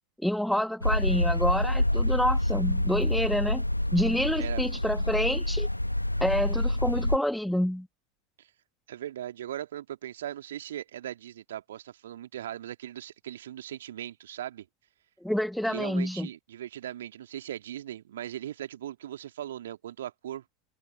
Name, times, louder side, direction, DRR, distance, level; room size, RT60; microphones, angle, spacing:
voice 1, 0.2-3.6 3.9-5.7 6.2-7.9 15.2-16.3, equal, ahead, 1.7 m, -28 dB
sound 1, 0.8-7.2, left 1 dB, 85° left, 1.7 m, -27 dB
voice 2, 4.4-4.7 8.4-8.5 8.9-14.7 15.6-20.4, right 11 dB, 60° right, 2.4 m, -39 dB
figure-of-eight pair, 90°, 0 cm